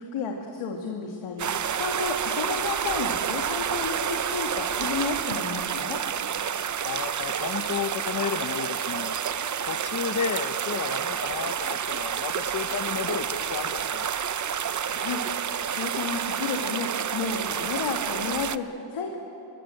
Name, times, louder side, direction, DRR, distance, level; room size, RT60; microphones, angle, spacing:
voice 1, 0.1-1.5 1.8-6.0 14.9-15.2 15.6-19.2, left 5 dB, 80° left, 1 dB, 2.4 m, -32 dB
sound 1, 1.4-18.6, right 8 dB, 35° right, 0.7 m, -29 dB
voice 2, 6.8-9.2 9.6-14.1, left 7 dB, 40° left, 13 dB, 0.9 m, -32 dB
26.5 x 22.5 x 7.8 m, 2.8 s
cardioid pair, 115°, 49 cm